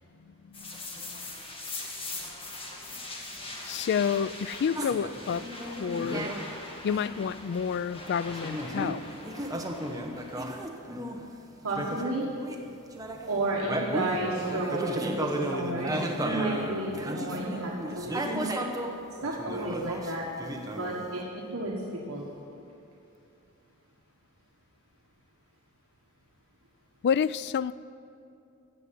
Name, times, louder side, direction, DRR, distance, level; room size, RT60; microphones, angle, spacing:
voice 1, 0.3-1.3 3.6-6.3 6.8-9.0 27.0-27.7, left 7 dB, 50° left, 17 dB, 0.3 m, -30 dB
sound 1, 0.5-10.7, left 2 dB, 25° left, 1.8 m, -42 dB
sound 2, 4.7-6.5 6.9-7.2 8.3-11.2 11.7-12.7 12.9-19.0 19.2-21.2, right 1 dB, 15° right, 0.9 m, -34 dB
voice 2, 11.6-12.3 13.3-18.4 19.2-20.2 20.7-21.8 22.1-22.2, right 2 dB, 70° right, -3 dB, 1.5 m, -32 dB
15.0 x 6.9 x 8.2 m, 2.7 s
head